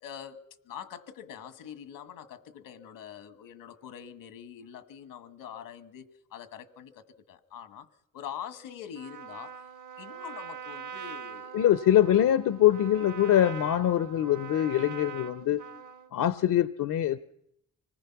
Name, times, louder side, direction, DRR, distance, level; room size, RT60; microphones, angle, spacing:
voice 1, 0.0-7.9 8.1-9.6 10.0-11.6, left 8 dB, 90° left, 1.6 m, -44 dB
Trumpet, 8.9-16.1, right 7 dB, 65° right, 1.4 m, -43 dB
voice 2, 11.5-15.6 16.1-17.2, left 11 dB, 70° left, 0.8 m, -23 dB
25.5 x 19.5 x 5.9 m
supercardioid pair, 55°, 33 cm